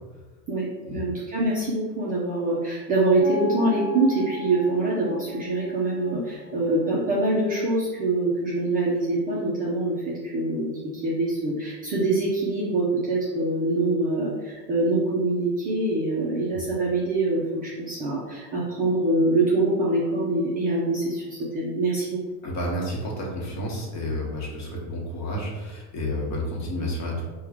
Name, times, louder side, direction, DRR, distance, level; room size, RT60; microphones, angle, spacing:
voice 1, 0.5-22.2, right 2 dB, 20° right, -6 dB, 0.4 m, -24 dB
sound 1, 3.2-7.4, left 2 dB, 20° left, 1.2 m, -38 dB
voice 2, 22.4-27.2, left 1 dB, 40° left, -3 dB, 1.1 m, -30 dB
4.7 x 2.3 x 3.5 m, 1.3 s
supercardioid pair, 150°, 43 cm